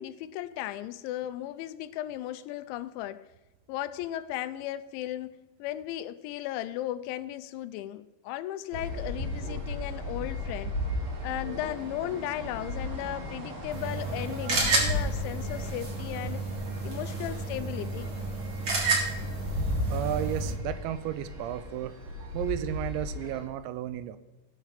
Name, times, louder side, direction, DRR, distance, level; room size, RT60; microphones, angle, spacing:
voice 1, 0.0-3.3 3.7-10.7 11.2-16.5 16.8-18.1, left 13 dB, 90° left, 3.0 m, -36 dB
sound 1, 8.7-23.4, left 1 dB, 70° right, 4.5 m, -36 dB
sound 2, 13.7-20.5, right 3 dB, 50° right, 1.5 m, -31 dB
voice 2, 19.9-24.2, right 12 dB, 85° right, 2.8 m, -33 dB
17.0 x 6.0 x 5.8 m
omnidirectional pair, 5.2 m